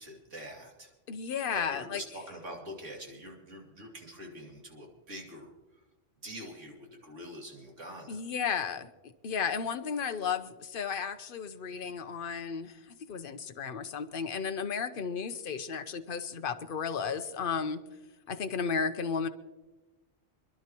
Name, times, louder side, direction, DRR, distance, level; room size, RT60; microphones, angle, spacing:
voice 1, 0.0-0.9 1.5-5.8 6.2-8.2, equal, 75° right, 0 dB, 2.9 m, -45 dB
voice 2, 1.1-2.0 8.1-8.9 9.2-12.7 13.1-17.8 18.3-19.3, left 6 dB, 50° left, 9 dB, 0.9 m, -33 dB
26.5 x 11.5 x 3.0 m, 1.1 s
omnidirectional pair, 1.3 m